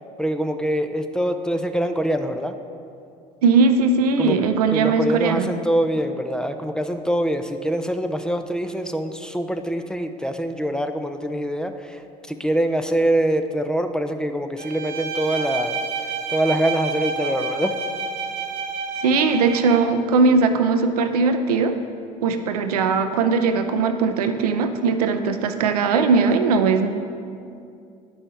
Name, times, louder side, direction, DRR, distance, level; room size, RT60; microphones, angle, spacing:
voice 1, 0.2-2.5 4.2-4.4 4.7-12.0 12.3-15.8 16.3-17.8, right 1 dB, 5° left, 7 dB, 0.5 m, -24 dB
voice 2, 3.4-5.5 19.0-21.8 22.2-26.9, right 4 dB, 90° right, 8 dB, 0.5 m, -19 dB
Bowed string instrument, 14.6-19.9, right 5 dB, 65° right, 1.0 m, -29 dB
10.5 x 5.5 x 4.1 m, 2.5 s
hypercardioid pair, 65°, 19 cm